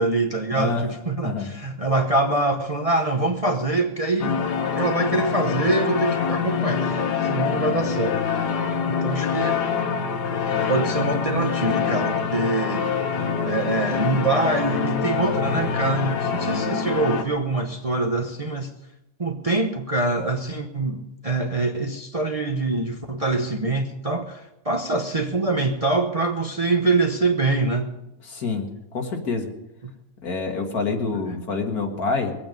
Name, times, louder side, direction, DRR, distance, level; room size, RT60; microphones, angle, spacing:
voice 1, 0.0-4.4 4.7-8.2 8.9-9.6 10.6-12.8 13.4-18.7 19.2-27.9 29.8-29.9, right 2 dB, 25° right, 3 dB, 0.8 m, -24 dB
voice 2, 0.5-0.9 1.2-1.5 28.2-28.7 28.9-29.5 30.2-32.4, left 4 dB, 65° left, 3 dB, 2.2 m, -26 dB
sound 1, 4.2-17.2, left 6 dB, 80° left, 1.8 m, -25 dB
22.0 x 8.8 x 5.2 m, 0.90 s
omnidirectional pair, 1.7 m